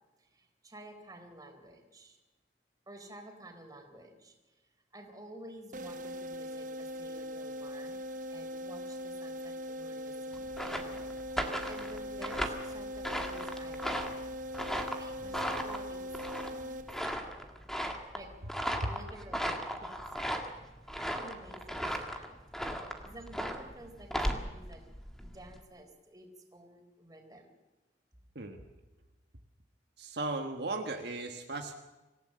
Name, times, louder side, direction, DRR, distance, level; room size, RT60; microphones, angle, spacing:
voice 1, 0.2-2.2 2.9-4.6 4.9-8.0 8.3-11.0 11.6-14.2 15.0-16.0 16.4-16.7 17.0-17.4 18.1-18.3 18.9-20.4 21.0-22.4 23.1-24.8 25.2-27.6, right 1 dB, 20° right, 3 dB, 4.2 m, -51 dB
sound 1, 5.7-17.4, equal, 50° right, 0.9 m, -41 dB
sound 2, 10.3-25.6, equal, ahead, 1.9 m, -37 dB
voice 2, 30.0-31.7, right 2 dB, 65° right, 3 dB, 1.5 m, -36 dB
26.0 x 16.5 x 7.7 m, 1.1 s
head